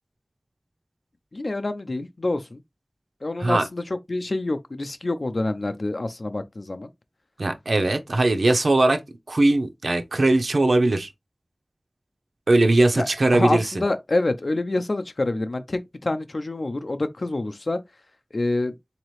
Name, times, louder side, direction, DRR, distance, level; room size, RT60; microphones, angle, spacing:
voice 1, 1.3-2.6 3.2-6.9 12.9-17.8 18.3-18.8, left 2 dB, 65° left, 0.6 m, -27 dB
voice 2, 7.4-9.0 9.3-11.1 12.5-13.8, right 2 dB, 85° right, 0.5 m, -20 dB
4.0 x 2.8 x 3.1 m
wide cardioid pair, 55°, 0 cm